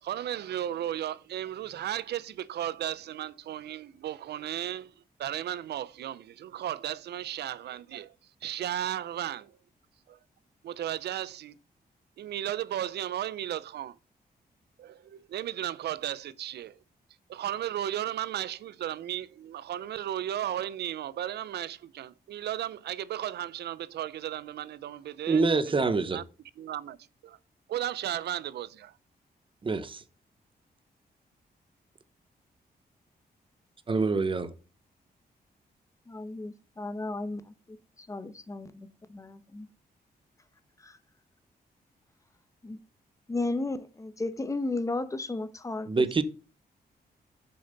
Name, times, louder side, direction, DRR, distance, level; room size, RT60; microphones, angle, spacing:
voice 1, 0.0-4.9 5.2-8.1 8.4-9.6 10.1-10.2 10.6-11.6 12.2-14.0 14.8-16.8 17.3-26.2 26.6-27.0 27.2-27.4 27.7-28.9, right 11 dB, 90° right, 0.5 m, -35 dB
voice 2, 25.3-26.2 29.6-30.0 33.9-34.5 45.9-46.2, right 4 dB, 30° right, 0.8 m, -26 dB
voice 3, 36.1-37.5 38.1-39.7 40.8-40.9 42.6-42.8 43.3-46.0, left 2 dB, 20° left, 0.9 m, -34 dB
7.7 x 6.9 x 3.9 m
wide cardioid pair, 125°, 17 cm